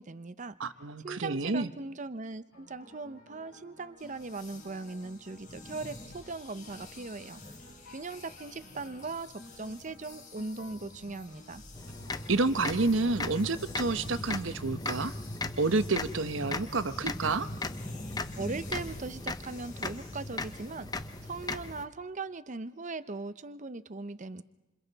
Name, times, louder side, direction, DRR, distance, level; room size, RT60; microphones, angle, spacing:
voice 1, 0.0-0.6 1.0-7.4 7.9-11.6 18.4-20.9 21.2-24.4, right 3 dB, 35° right, 13 dB, 0.7 m, -39 dB
voice 2, 0.6-1.7 12.3-15.1 15.6-17.5, right 3 dB, 65° right, 12 dB, 1.0 m, -29 dB
sound 1, 2.5-13.8, left 1 dB, 85° left, 6.2 m, -55 dB
sound 2, 4.0-21.5, left 2 dB, 40° left, 4.2 m, -49 dB
sound 3, 11.7-21.9, left 2 dB, 20° left, 0.7 m, -38 dB
28.0 x 27.0 x 4.1 m, 1.1 s
head